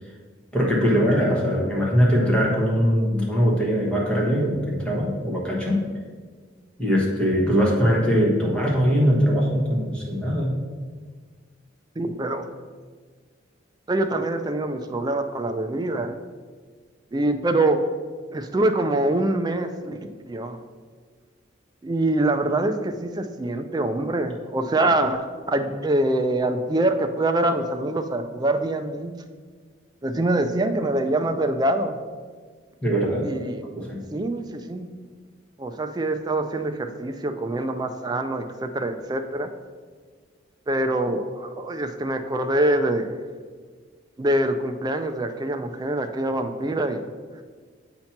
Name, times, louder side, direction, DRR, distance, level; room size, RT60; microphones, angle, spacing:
voice 1, 0.5-5.8 6.8-10.6 32.8-33.3 33.7-34.0, equal, 5° left, -4 dB, 1.2 m, -21 dB
voice 2, 12.0-12.5 13.9-16.1 17.1-17.8 18.3-20.6 21.8-29.2 30.0-32.0 33.2-33.6 34.1-34.9 35.6-39.5 40.7-43.2 44.2-47.0, right 1 dB, 20° right, 7 dB, 0.3 m, -24 dB
7.6 x 2.9 x 5.8 m, 1.6 s
head